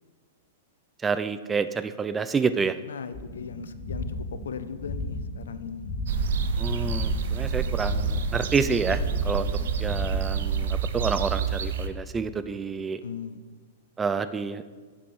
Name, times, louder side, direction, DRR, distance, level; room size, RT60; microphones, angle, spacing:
voice 1, 1.0-2.8 6.6-9.0 9.2-9.5 9.8-13.0 14.0-14.6, right 5 dB, 15° right, 12 dB, 0.4 m, -28 dB
voice 2, 2.9-5.9 13.0-13.4, left 6 dB, 75° left, 12 dB, 0.5 m, -38 dB
sound 1, 3.1-10.5, left 2 dB, 55° left, 3.1 m, -35 dB
sound 2, 6.1-11.9, right 6 dB, 65° right, 0.7 m, -28 dB
8.7 x 7.1 x 4.6 m, 1.5 s
hypercardioid pair, 105°, 0 cm